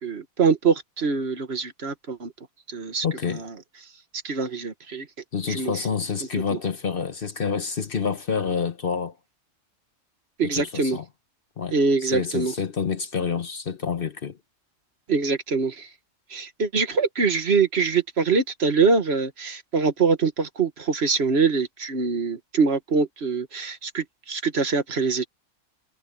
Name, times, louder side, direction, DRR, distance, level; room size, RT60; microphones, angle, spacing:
voice 1, 0.0-2.3 2.7-3.4 4.2-5.1 5.5-5.8 6.5-6.6 10.4-11.0 11.7-12.5 15.1-15.9 16.3-25.3, right 4 dB, 55° right, 1.5 m, -24 dB
voice 2, 3.0-3.4 5.3-9.1 10.4-11.1 11.6-14.4, left 6 dB, 50° left, 1.0 m, -28 dB
omnidirectional pair, 1.3 m